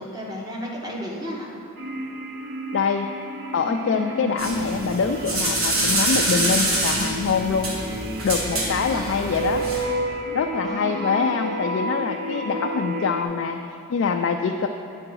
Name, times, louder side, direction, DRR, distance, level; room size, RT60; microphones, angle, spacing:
voice 1, 0.0-1.5 8.8-9.3 10.6-11.6, equal, 15° right, -3 dB, 0.9 m, -34 dB
sound 1, 1.8-13.2, right 1 dB, 50° right, 0.5 m, -31 dB
voice 2, 2.7-3.1 3.5-7.8 8.2-9.7 10.3-13.6 13.9-14.7, left 5 dB, 65° left, 4 dB, 0.3 m, -24 dB
sound 2, 4.4-9.8, right 1 dB, 80° right, 1.6 m, -26 dB
8.9 x 3.8 x 6.1 m, 2.6 s
head